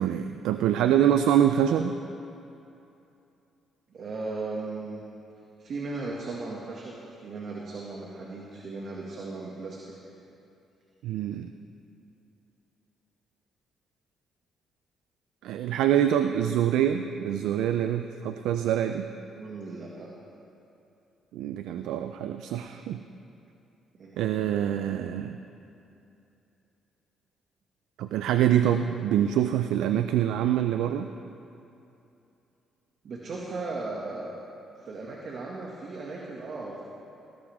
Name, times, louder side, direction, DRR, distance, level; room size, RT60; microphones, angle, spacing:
voice 1, 0.0-2.0 11.0-11.5 15.4-19.1 21.3-23.0 24.2-25.4 28.0-31.1, right 10 dB, 90° right, 8 dB, 0.5 m, -25 dB
voice 2, 3.9-5.0 5.6-6.9 7.2-9.9 19.3-20.1 24.0-24.2 33.0-34.3 34.8-36.8, right 3 dB, 55° right, -3 dB, 2.0 m, -36 dB
19.0 x 17.5 x 3.6 m, 2.8 s
cardioid pair, 90°, 0 cm